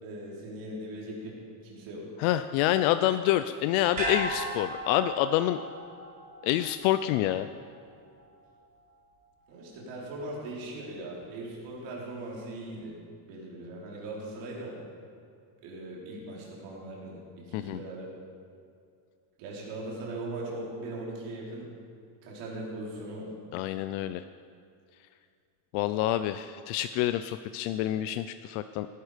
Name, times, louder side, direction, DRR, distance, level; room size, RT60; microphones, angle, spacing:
voice 1, 0.0-2.1 9.5-13.0 13.2-14.8 15.6-18.1 19.4-21.7 22.2-23.3, right 1 dB, 65° right, -4 dB, 4.2 m, -39 dB
voice 2, 2.2-5.6 6.4-7.5 17.5-17.8 23.5-24.2 25.7-28.9, left 13 dB, 80° left, 11 dB, 0.6 m, -27 dB
sound 1, 4.0-8.3 8.6-8.7, right 1 dB, 15° right, 3.7 m, -36 dB
17.0 x 11.0 x 5.1 m, 2.3 s
cardioid pair, 175°, 47 cm